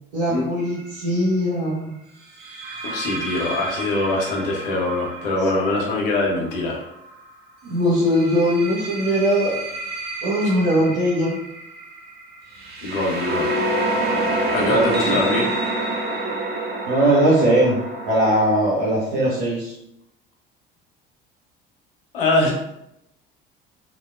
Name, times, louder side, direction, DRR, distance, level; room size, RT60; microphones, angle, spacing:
voice 1, 0.1-1.9 7.6-9.5 10.2-11.4 14.6-15.2 16.9-17.8 18.1-19.7, right 1 dB, 70° right, -7 dB, 0.8 m, -20 dB
sound 1, 0.6-0.9 2.4-7.1 7.9-18.4, right 1 dB, 35° right, 0.5 m, -28 dB
voice 2, 2.8-6.8 12.8-13.5 14.5-15.5 22.1-22.5, left 2 dB, 75° left, -2 dB, 0.7 m, -23 dB
2.9 x 2.0 x 2.3 m, 0.81 s
figure-of-eight pair, 55°, 29 cm